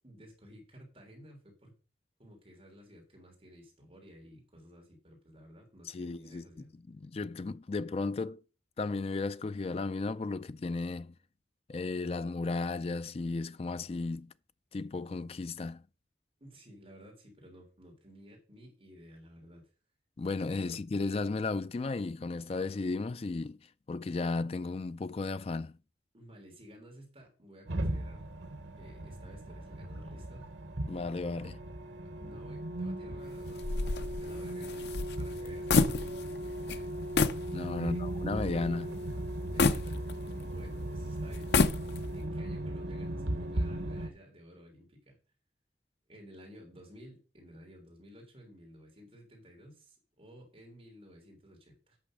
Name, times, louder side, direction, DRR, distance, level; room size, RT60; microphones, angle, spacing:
voice 1, 0.0-1.7 2.2-6.7 16.4-19.6 20.6-20.8 26.1-28.2 28.8-30.5 32.1-34.9 35.2-37.0 37.8-38.0 39.5-40.0 40.3-41.6 42.0-45.2 46.1-52.0, equal, 30° right, 3.3 m, -54 dB
voice 2, 5.9-6.4 6.9-8.4 8.8-11.1 11.7-14.3 14.7-15.8 20.2-23.6 23.9-25.7 30.9-31.6 37.5-39.0, left 3 dB, 35° left, 0.4 m, -34 dB
sound 1, 27.7-44.1, right 1 dB, 90° right, 1.1 m, -37 dB
sound 2, 33.6-36.4 36.7-36.8 37.2-37.5 38.0-38.1 39.6-40.6 41.3-42.2, left 4 dB, 70° left, 0.7 m, -28 dB
8.6 x 6.1 x 6.3 m
head